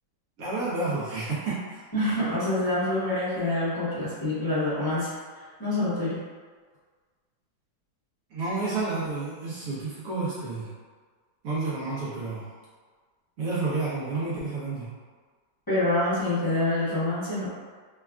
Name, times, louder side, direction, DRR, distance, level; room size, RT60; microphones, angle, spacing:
voice 1, 0.4-1.8 8.3-10.7 11.4-12.5 13.4-14.9, right 3 dB, 70° right, -8 dB, 0.8 m, -30 dB
voice 2, 1.9-5.1 5.6-6.2 15.7-17.5, left 1 dB, 30° left, -13 dB, 0.4 m, -26 dB
3.3 x 2.2 x 2.3 m, 1.5 s
omnidirectional pair, 2.1 m